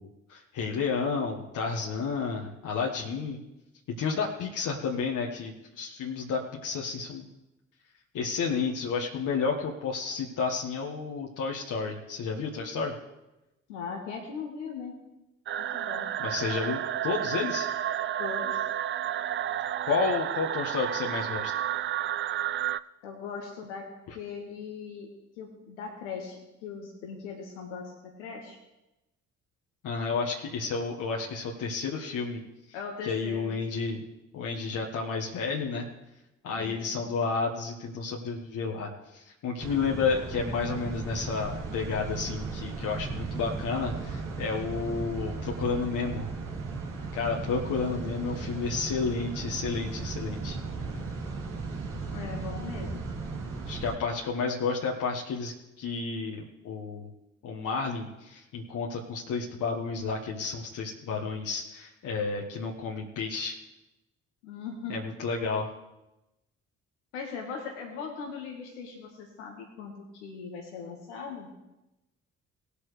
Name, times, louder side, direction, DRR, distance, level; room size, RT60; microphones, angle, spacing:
voice 1, 0.0-3.4 4.0-7.3 8.1-12.9 16.2-17.7 19.9-21.5 24.1-24.2 29.8-32.4 33.0-34.0 34.3-35.9 36.4-46.3 47.1-50.6 53.7-57.1 57.4-63.6 64.9-65.7, left 5 dB, 55° left, -1 dB, 1.6 m, -31 dB
voice 2, 13.7-14.9 15.6-16.1 18.2-18.6 23.0-28.6 32.7-33.5 36.5-37.1 52.1-53.0 64.4-64.9 67.1-71.5, left 5 dB, 80° left, 1 dB, 1.6 m, -39 dB
sound 1, 15.5-22.8, right 11 dB, 35° right, 0.4 m, -31 dB
sound 2, 39.6-53.9, right 4 dB, 60° right, 2.6 m, -36 dB
19.5 x 8.3 x 3.3 m, 0.98 s
figure-of-eight pair, 40°, 36 cm